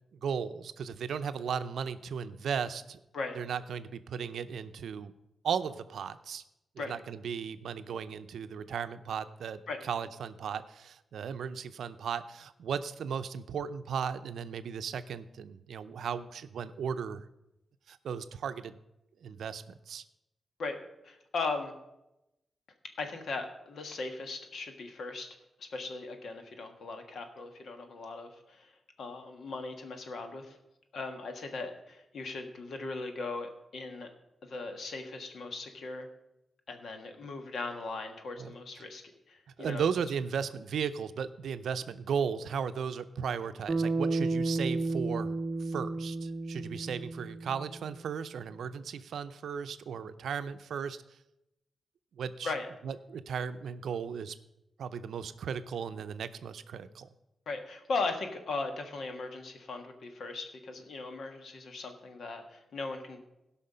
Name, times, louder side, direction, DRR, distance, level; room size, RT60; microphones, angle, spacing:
voice 1, 0.1-3.0 3.4-5.1 5.4-6.4 6.9-17.2 17.9-18.8 19.2-20.0 38.4-38.5 39.6-45.4 45.6-51.0 52.1-52.5 52.8-54.4 54.8-57.1, right 7 dB, 85° right, 11 dB, 0.5 m, -36 dB
voice 2, 20.6-21.8 23.0-25.3 25.6-28.7 29.0-30.6 30.9-34.1 34.4-36.1 36.7-39.8 52.4-52.7 57.5-63.2, left 3 dB, 70° left, 6 dB, 1.4 m, -38 dB
Bass guitar, 43.7-48.1, right 3 dB, 30° right, 0.7 m, -32 dB
16.5 x 5.7 x 5.5 m, 0.90 s
wide cardioid pair, 120°, 0 cm